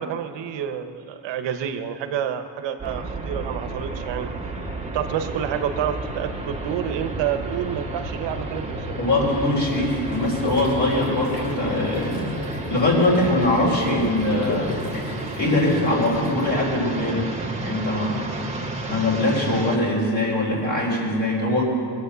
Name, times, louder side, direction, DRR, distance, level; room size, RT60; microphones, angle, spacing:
voice 1, 0.0-4.3 4.9-9.0, right 9 dB, 75° right, 8 dB, 1.1 m, -29 dB
sound 1, 2.8-19.8, right 2 dB, 15° right, 1.9 m, -32 dB
voice 2, 9.0-12.2 12.7-14.8 15.4-17.3 17.6-18.2 18.9-21.6, left 1 dB, 40° left, -5 dB, 4.0 m, -22 dB
sound 2, 9.7-16.4, left 2 dB, 65° left, 3.1 m, -33 dB
21.0 x 8.6 x 6.9 m, 2.3 s
cardioid pair, 100°, 44 cm